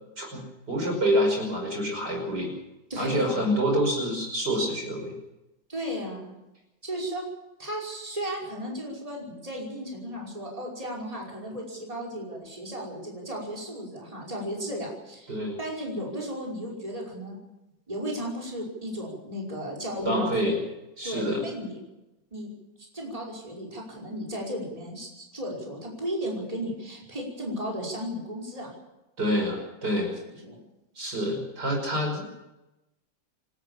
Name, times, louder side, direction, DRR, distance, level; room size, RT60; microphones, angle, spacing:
voice 1, 0.2-2.5 3.0-5.1 15.3-15.6 20.0-20.6 21.0-21.4 29.2-30.1 31.0-32.2, equal, 60° right, 1 dB, 6.2 m, -27 dB
voice 2, 2.9-3.4 5.7-6.3 6.8-7.3 7.6-17.4 17.9-20.6 21.0-21.8 22.3-22.5 22.9-28.7 30.3-30.6, equal, 20° right, -3 dB, 5.6 m, -35 dB
27.5 x 13.0 x 7.4 m, 0.96 s
omnidirectional pair, 2.0 m